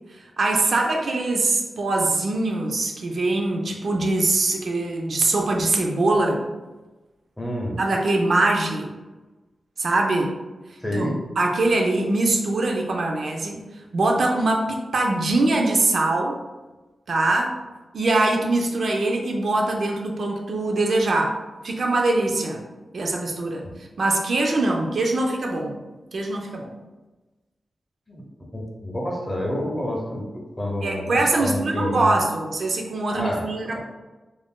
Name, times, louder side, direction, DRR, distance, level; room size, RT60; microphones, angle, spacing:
voice 1, 0.4-6.5 7.8-8.9 9.8-10.3 10.9-13.6 13.9-16.4 17.1-17.6 17.9-21.3 21.6-22.6 22.9-23.7 24.0-25.8 26.1-26.7 30.8-33.8, right 2 dB, 65° right, 1 dB, 0.4 m, -22 dB
voice 2, 7.4-7.8 10.8-11.2 23.6-23.7 28.1-28.2 28.5-32.1 33.1-33.5, left 1 dB, 15° left, -1 dB, 0.6 m, -28 dB
2.4 x 2.1 x 3.5 m, 1.1 s
wide cardioid pair, 125°, 0 cm